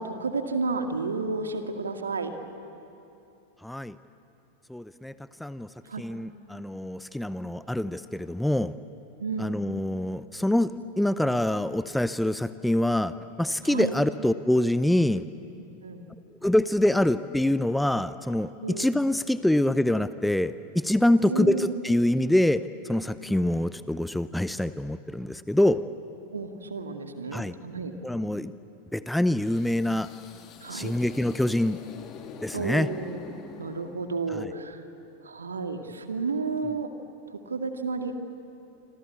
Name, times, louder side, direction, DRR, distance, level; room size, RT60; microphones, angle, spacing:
voice 1, 0.0-2.3 5.9-6.0 9.2-9.6 13.6-14.0 15.8-16.1 18.6-18.9 21.2-21.9 26.3-27.9 30.6-30.9 32.5-33.2 33.6-34.8 35.2-36.9 37.3-38.1, right 4 dB, 70° right, 6 dB, 2.1 m, -31 dB
voice 2, 3.6-4.0 4.7-5.1 5.4-5.7 6.0-8.7 9.4-15.2 16.4-25.8 27.3-27.5 28.0-28.5 28.9-30.1 30.7-31.8 32.4-32.9 34.3-34.5, left 1 dB, 5° left, 14 dB, 0.6 m, -25 dB
sound 1, 29.3-34.4, left 6 dB, 30° left, 2.3 m, -45 dB
26.5 x 26.0 x 8.4 m, 2.8 s
figure-of-eight pair, 90°, 0 cm